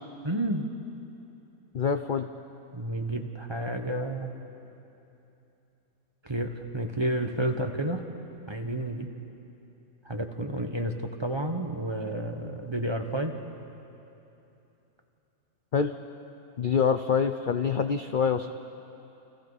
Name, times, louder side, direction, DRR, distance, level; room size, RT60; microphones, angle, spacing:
voice 1, 0.2-0.7 2.7-4.3 6.3-8.0 8.5-9.1 10.0-10.9 11.2-13.3, right 1 dB, 20° right, 4 dB, 1.2 m, -30 dB
voice 2, 1.7-2.3 15.7-15.9 16.6-18.5, left 6 dB, 55° left, 8 dB, 0.6 m, -25 dB
29.0 x 28.5 x 4.2 m, 2.9 s
omnidirectional pair, 1.6 m